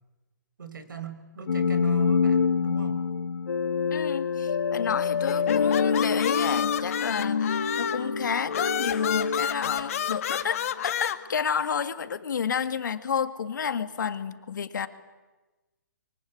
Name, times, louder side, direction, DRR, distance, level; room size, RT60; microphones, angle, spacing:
voice 1, 0.6-3.0, right 6 dB, 85° right, 10 dB, 4.7 m, -41 dB
sound 1, 1.5-10.4, left 5 dB, 85° left, 1.5 m, -26 dB
voice 2, 3.9-14.9, left 7 dB, 70° left, 10 dB, 2.2 m, -30 dB
sound 2, 5.3-8.1 8.5-11.2, left 10 dB, 45° left, 1.7 m, -30 dB
26.0 x 23.5 x 9.6 m, 1.2 s
hypercardioid pair, 160°, 10 cm